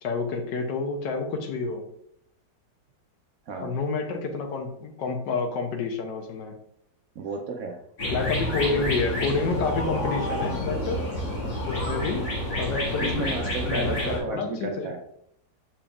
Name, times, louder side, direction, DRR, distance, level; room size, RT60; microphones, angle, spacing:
voice 1, 0.0-1.8 3.6-6.6 8.1-11.1 11.7-12.3 12.6-13.2 13.7-14.9, left 4 dB, 75° left, 5 dB, 1.5 m, -29 dB
voice 2, 7.2-7.8 13.0-15.0, right 3 dB, 65° right, 2 dB, 0.9 m, -33 dB
sound 1, 8.0-14.2, left 1 dB, 60° left, 2.6 m, -29 dB
7.0 x 5.7 x 2.4 m, 0.75 s
omnidirectional pair, 2.0 m